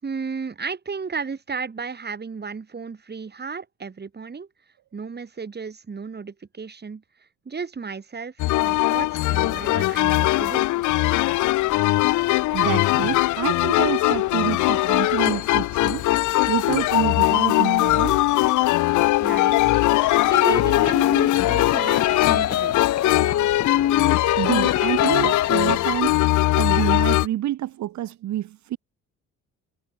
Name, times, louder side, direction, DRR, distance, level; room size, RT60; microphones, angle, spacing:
voice 1, 0.0-4.5 4.9-7.0 7.4-8.3 8.6-10.6 19.2-19.8 20.3-22.8, right 5 dB, 35° right, 4.4 m, -33 dB
Mechanical Street Organ - The Hague, 8.4-27.3, left 18 dB, 75° left, 0.5 m, -21 dB
voice 2, 12.5-16.1 16.5-18.2 24.4-28.8, right 13 dB, 70° right, 1.0 m, -27 dB
sound 1, 20.3-25.8, left 11 dB, 60° left, 1.0 m, -23 dB
cardioid pair, 90°, 30 cm